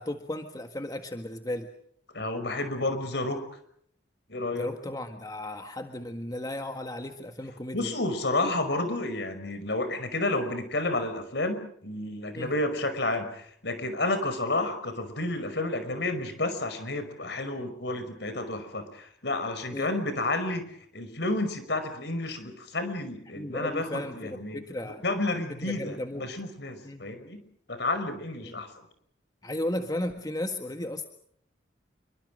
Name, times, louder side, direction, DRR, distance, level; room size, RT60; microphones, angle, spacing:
voice 1, 0.0-1.7 4.5-7.9 8.4-8.5 12.4-12.5 19.7-19.9 23.4-25.0 25.6-26.3 26.8-27.1 28.4-28.6 29.4-31.1, left 1 dB, 20° left, 5 dB, 1.7 m, -35 dB
voice 2, 2.1-3.4 4.3-4.7 7.7-20.7 20.9-27.4 27.7-28.7, left 2 dB, 65° left, 10 dB, 5.4 m, -31 dB
28.5 x 24.0 x 6.4 m, 0.65 s
head